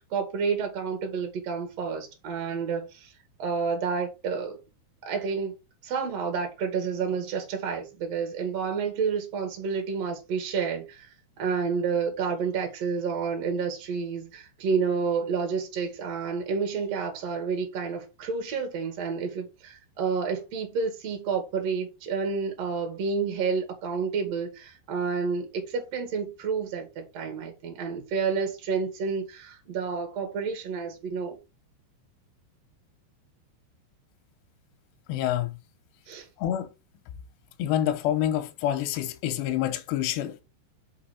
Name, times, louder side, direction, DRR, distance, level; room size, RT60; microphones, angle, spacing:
voice 1, 0.0-3.1 3.4-4.6 5.0-5.5 5.8-31.4 36.1-36.3, right 5 dB, 50° right, 2.3 m, -30 dB
voice 2, 35.1-35.6 36.4-36.7 37.6-40.4, left 11 dB, 75° left, 2.8 m, -27 dB
5.7 x 5.5 x 4.4 m
omnidirectional pair, 5.7 m